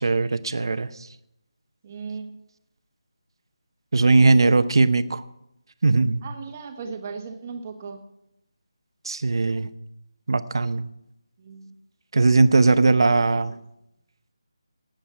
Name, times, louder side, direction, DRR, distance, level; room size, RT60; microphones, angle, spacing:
voice 1, 0.0-0.9 3.9-5.2 5.8-6.2 9.0-9.7 10.3-10.8 12.1-13.5, right 3 dB, 55° right, 12 dB, 0.8 m, -19 dB
voice 2, 1.8-2.3 6.2-8.0 11.4-11.8, right 5 dB, 25° right, 6 dB, 1.2 m, -37 dB
17.0 x 9.0 x 5.9 m, 0.84 s
figure-of-eight pair, 170°, 3 cm